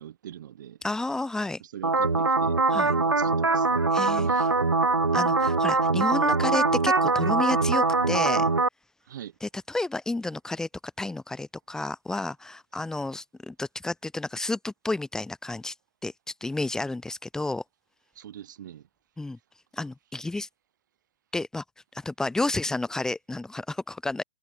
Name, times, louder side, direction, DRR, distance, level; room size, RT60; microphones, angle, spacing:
voice 1, 0.0-0.8 1.7-3.8 4.2-4.5 9.1-9.3 18.2-18.8, right 11 dB, 50° right, 6.9 m, -43 dB
voice 2, 0.8-1.6 2.7-2.9 3.9-4.5 5.1-8.5 9.4-10.7 11.0-15.7 16.0-16.1 16.4-17.6 19.2-19.4 19.7-20.5 21.3-21.6 21.9-24.2, left 2 dB, 5° left, 3.2 m, -31 dB
sound 1, 1.8-8.7, right 3 dB, 75° right, 1.9 m, -23 dB
figure-of-eight pair, 120°, 13 cm